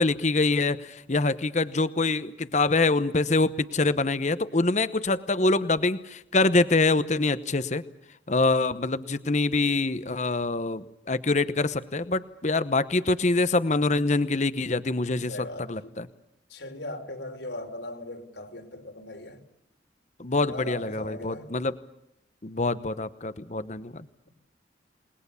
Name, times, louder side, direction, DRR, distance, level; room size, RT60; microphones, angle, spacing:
voice 1, 0.0-7.8 8.3-16.1 20.2-21.8 22.4-24.0, left 3 dB, 40° left, 0.9 m, -25 dB
voice 2, 15.3-15.8 16.5-19.4 20.3-21.5, left 1 dB, 75° left, 4.3 m, -38 dB
28.5 x 20.5 x 7.0 m
head